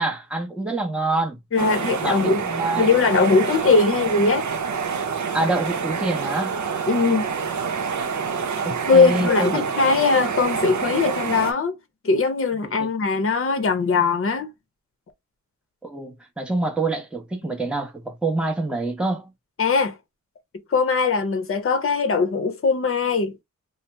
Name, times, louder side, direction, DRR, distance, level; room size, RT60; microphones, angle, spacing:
voice 1, 0.0-1.4 2.0-2.9 5.3-6.6 8.6-9.6 12.8-12.9 15.8-19.3, right 2 dB, 5° right, 0.7 m, -26 dB
voice 2, 1.5-2.4 2.8-4.5 6.9-7.3 8.9-11.7 12.0-14.5 19.6-20.0 20.7-23.3, left 4 dB, 45° left, 0.7 m, -20 dB
sound 1, 1.6-11.5, right 6 dB, 70° right, 0.6 m, -27 dB
2.8 x 2.0 x 3.2 m
wide cardioid pair, 60°, 31 cm